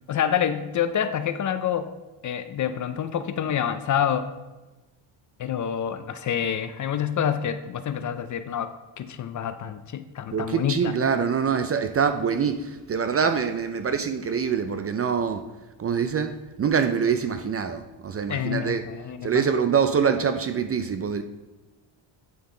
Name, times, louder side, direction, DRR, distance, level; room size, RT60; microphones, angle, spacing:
voice 1, 0.1-1.9 2.2-4.3 5.4-10.9 18.3-19.5, left 9 dB, 40° left, 11 dB, 0.5 m, -27 dB
voice 2, 10.3-15.4 15.8-18.8 19.2-21.2, right 6 dB, 30° right, 9 dB, 0.4 m, -25 dB
9.3 x 5.5 x 3.8 m, 1.1 s
cardioid pair, 105°, 48 cm